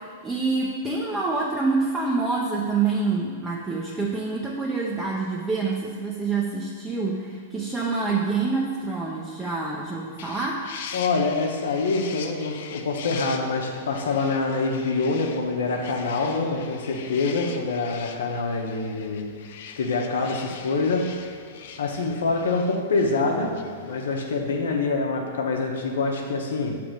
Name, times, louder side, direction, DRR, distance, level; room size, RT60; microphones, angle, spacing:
voice 1, 0.0-10.6, right 4 dB, 15° right, -4 dB, 0.7 m, -26 dB
sound 1, 10.2-24.2, left 7 dB, 65° left, 0.4 m, -42 dB
voice 2, 10.9-19.3 19.8-21.1 21.8-23.5 23.8-26.8, left 3 dB, 85° left, 2 dB, 0.9 m, -25 dB
6.0 x 3.4 x 5.1 m, 2.1 s
hypercardioid pair, 125°, 0 cm